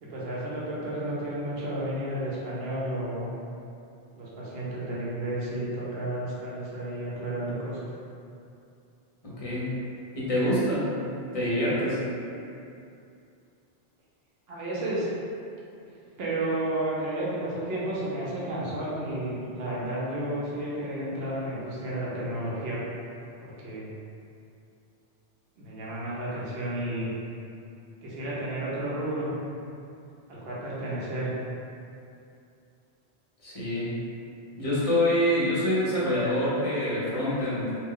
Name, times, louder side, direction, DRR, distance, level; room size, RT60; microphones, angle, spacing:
voice 1, 0.0-3.3 4.2-7.8 14.5-15.1 16.2-22.8 23.4-23.9 25.6-27.1 28.0-29.3 30.3-31.4, right 1 dB, 70° right, -7 dB, 0.9 m, -32 dB
voice 2, 9.2-9.8 10.1-10.9 11.3-12.0 33.4-33.9 34.6-37.8, left 1 dB, 35° left, -9 dB, 0.7 m, -26 dB
2.4 x 2.1 x 3.6 m, 2.6 s
omnidirectional pair, 1.1 m